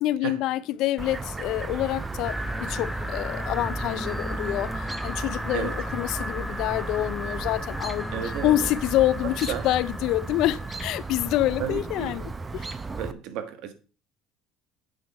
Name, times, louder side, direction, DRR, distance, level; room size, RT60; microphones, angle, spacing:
voice 1, 0.0-12.7, left 14 dB, 70° left, 0.5 m, -27 dB
Chirp tweet, 1.0-13.1, right 4 dB, 20° right, 0.7 m, -36 dB
sound 1, 2.2-11.7, equal, 5° right, 1.2 m, -35 dB
voice 2, 8.1-8.7 9.2-9.7 11.6-12.1 12.9-13.7, right 9 dB, 70° right, 1.3 m, -33 dB
8.1 x 6.0 x 4.5 m
supercardioid pair, 95°, 0 cm